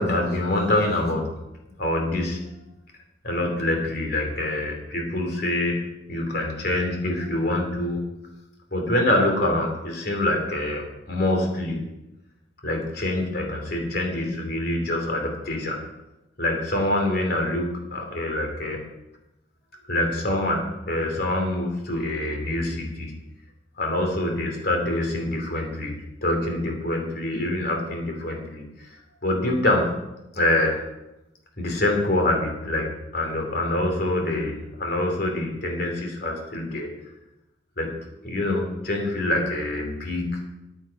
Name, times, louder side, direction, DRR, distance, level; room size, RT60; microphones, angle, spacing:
voice 1, 0.0-1.3 1.8-2.4 3.2-5.8 6.1-8.1 8.7-11.8 12.6-15.8 16.4-18.8 19.8-23.1 23.8-28.9 29.2-29.9 30.3-30.8 31.6-36.9 37.8-37.9 38.2-40.4, left 1 dB, 55° left, 2 dB, 2.9 m, -25 dB
14.0 x 8.9 x 4.8 m, 0.93 s
head